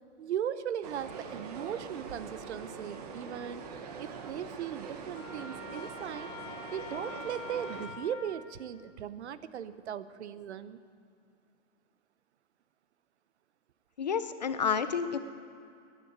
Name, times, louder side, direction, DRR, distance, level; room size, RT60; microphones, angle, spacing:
voice 1, 0.2-3.6 4.0-6.3 6.7-10.8, right 9 dB, 60° right, 14 dB, 0.8 m, -38 dB
sound 1, 0.8-7.9, right 5 dB, 30° right, 1.0 m, -43 dB
Trumpet, 5.1-8.5, left 4 dB, 80° left, 1.9 m, -45 dB
voice 2, 14.0-15.2, left 6 dB, 35° left, 11 dB, 0.4 m, -30 dB
14.5 x 9.8 x 9.6 m, 2.4 s
hypercardioid pair, 180°, 37 cm